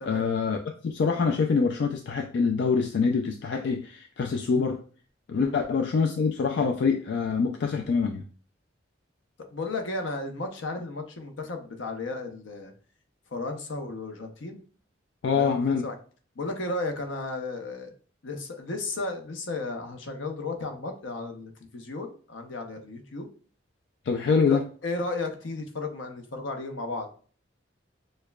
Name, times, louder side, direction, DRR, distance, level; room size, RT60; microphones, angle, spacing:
voice 1, 0.0-4.8 5.3-8.3 15.2-15.9 24.1-24.6, left 5 dB, 65° left, 4 dB, 0.4 m, -25 dB
voice 2, 9.5-12.7 13.3-14.6 15.3-15.9 16.4-17.9 18.2-23.3 24.4-27.3, left 3 dB, 85° left, 5 dB, 0.7 m, -34 dB
6.4 x 2.2 x 2.3 m, 0.41 s
head